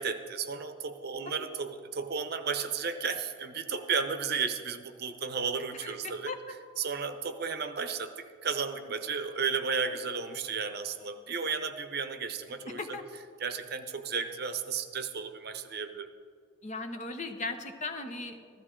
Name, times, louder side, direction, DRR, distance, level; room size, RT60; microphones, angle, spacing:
voice 1, 0.0-6.3 6.8-12.8 13.4-16.1, right 5 dB, 50° right, 8 dB, 0.8 m, -33 dB
voice 2, 5.7-6.5 9.8-10.0 12.7-13.0 16.6-18.6, left 3 dB, 35° left, 7 dB, 0.8 m, -38 dB
15.0 x 13.5 x 3.8 m, 2.2 s
head